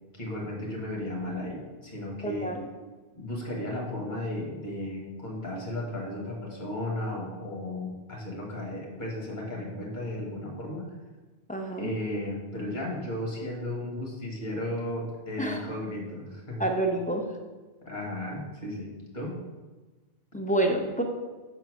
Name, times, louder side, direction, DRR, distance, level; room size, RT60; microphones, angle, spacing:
voice 1, 0.1-2.5 3.1-10.9 11.8-16.6 17.8-19.4, left 1 dB, 45° left, -2 dB, 1.6 m, -35 dB
voice 2, 2.2-2.7 11.5-11.9 15.4-15.6 16.6-17.3 20.3-21.0, right 1 dB, 10° left, 1 dB, 0.4 m, -28 dB
5.6 x 3.8 x 6.1 m, 1.2 s
omnidirectional pair, 1.2 m